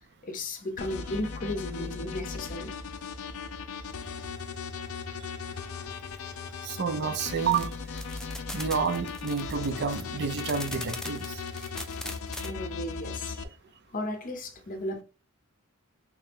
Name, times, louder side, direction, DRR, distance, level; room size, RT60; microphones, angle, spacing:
voice 1, 0.2-2.8 7.0-7.1 12.4-13.4 13.9-15.0, left 1 dB, 40° left, 0.6 m, -35 dB
sound 1, 0.8-13.4, left 5 dB, 80° left, 0.5 m, -38 dB
voice 2, 6.6-7.7 8.5-11.4, right 6 dB, 55° right, 0.5 m, -29 dB
sound 2, 7.4-12.5, left 1 dB, 5° left, 0.4 m, -40 dB
3.2 x 2.9 x 3.4 m
head